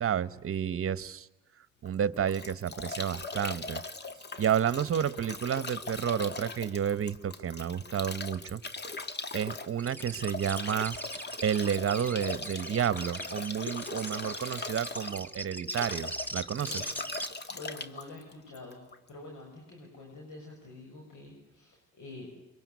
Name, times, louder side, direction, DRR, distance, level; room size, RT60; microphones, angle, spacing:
voice 1, 0.0-1.3 1.8-3.8 4.4-8.6 9.3-10.9 11.4-16.9, right 8 dB, 45° right, 17 dB, 1.1 m, -31 dB
Bathtub (filling or washing) / Drip / Trickle dribble, 1.9-19.1, left 3 dB, 35° left, 1.9 m, -40 dB
sound 1, 9.8-17.3, right 1 dB, 5° left, 2.1 m, -40 dB
voice 2, 16.5-18.8 19.1-22.3, left 2 dB, 80° left, 0 dB, 7.1 m, -47 dB
24.0 x 23.5 x 9.5 m, 1.0 s
cardioid pair, 90°, 30 cm